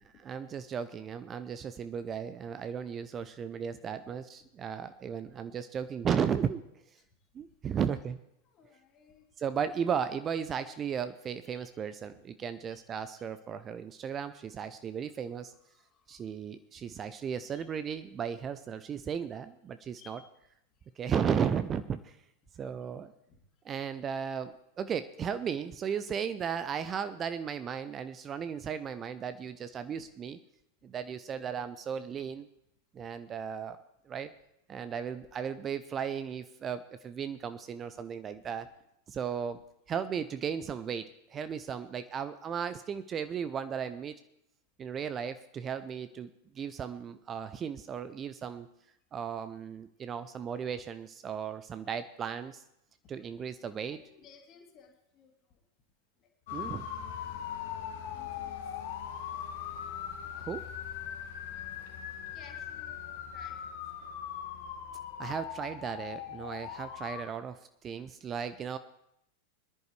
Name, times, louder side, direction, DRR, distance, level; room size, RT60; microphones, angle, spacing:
voice 1, 0.2-6.6 7.3-8.2 9.4-15.5 16.1-20.2 21.0-22.2 22.6-23.1 23.7-30.4 30.8-32.5 32.9-33.8 34.1-34.3 34.7-38.7 39.1-39.6 39.9-44.1 44.8-48.7 49.1-52.6 53.1-54.0 56.5-56.9 60.4-60.6 65.2-67.6 67.8-68.8, right 7 dB, 25° right, 12 dB, 0.5 m, -35 dB
voice 2, 8.4-9.2 11.5-11.8 12.1-12.2 12.6-12.8 13.2-13.3 15.5-16.2 17.5-17.7 20.0-20.3 22.5-22.6 23.3-23.4 29.9-30.0 38.5-38.6 45.0-45.1 53.9-55.6 56.2-56.3 57.9-58.6 59.7-59.8 61.2-61.3 62.3-63.5 64.0-64.1, left 7 dB, 30° left, 2 dB, 2.5 m, -59 dB
sound 1, 56.5-67.2, left 9 dB, 55° left, 1.6 m, -40 dB
23.0 x 10.5 x 3.2 m, 0.81 s
figure-of-eight pair, 90°, 0 cm